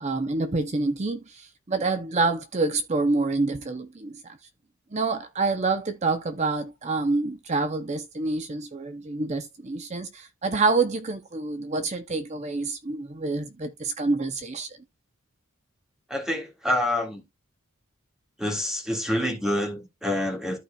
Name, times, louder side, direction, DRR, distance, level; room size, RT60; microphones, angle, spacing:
voice 1, 0.0-4.4 4.9-14.7, right 3 dB, 30° right, 0.6 m, -27 dB
voice 2, 16.1-17.2 18.4-20.6, left 1 dB, 5° right, 1.8 m, -27 dB
14.0 x 4.7 x 2.3 m
head